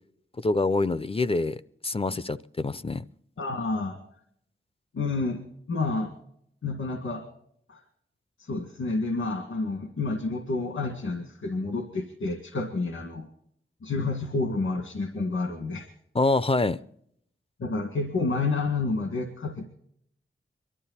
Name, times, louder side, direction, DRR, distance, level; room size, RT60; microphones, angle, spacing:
voice 1, 0.4-3.0 16.1-16.8, left 3 dB, 30° left, 0.5 m, -26 dB
voice 2, 3.4-4.0 4.9-5.4 5.7-6.1 6.6-7.2 7.7-7.8 8.4-13.3 13.8-15.9 17.6-19.6, left 3 dB, 90° left, 2.1 m, -29 dB
23.0 x 12.5 x 4.2 m
wide cardioid pair, 90°, 20 cm